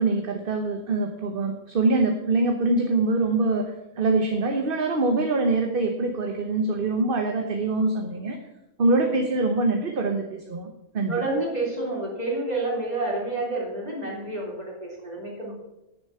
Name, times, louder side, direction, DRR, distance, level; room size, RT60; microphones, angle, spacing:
voice 1, 0.0-3.7 4.0-8.4 8.8-10.2 10.5-11.2, right 2 dB, 45° right, 4 dB, 1.1 m, -24 dB
voice 2, 11.1-15.5, right 2 dB, 30° right, -3 dB, 3.4 m, -29 dB
10.5 x 6.8 x 6.9 m, 0.92 s
omnidirectional pair, 1.4 m